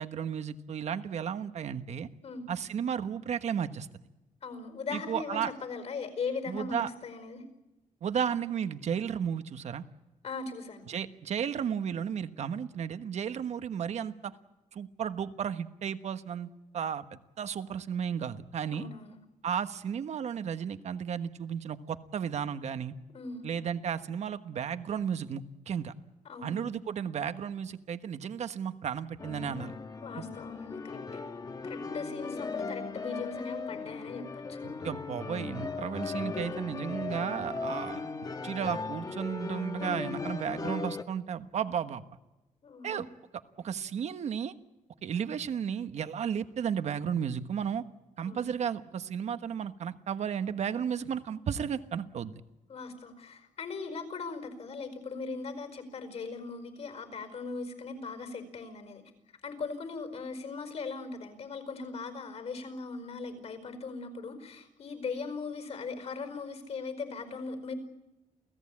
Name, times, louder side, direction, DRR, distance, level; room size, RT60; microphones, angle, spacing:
voice 1, 0.0-2.1 2.5-3.9 4.9-5.5 6.5-6.9 8.0-9.8 10.9-14.3 14.7-18.9 19.4-22.9 23.4-25.9 26.4-29.7 30.2-30.3 34.6-38.0 38.4-42.0 42.8-43.0 43.6-44.5 45.0-47.8 48.2-52.3, right 8 dB, 60° right, 10 dB, 1.3 m, -33 dB
voice 2, 4.4-7.4 10.2-10.9 18.7-19.2 23.1-23.5 26.2-26.8 30.0-34.6 42.6-43.0 48.2-48.6 52.7-59.0 59.4-67.7, left 4 dB, 55° left, 8 dB, 5.0 m, -39 dB
sound 1, 29.2-41.0, left 4 dB, 30° left, 1.3 m, -37 dB
29.0 x 17.0 x 8.6 m, 1.0 s
cardioid pair, 125°, 13 cm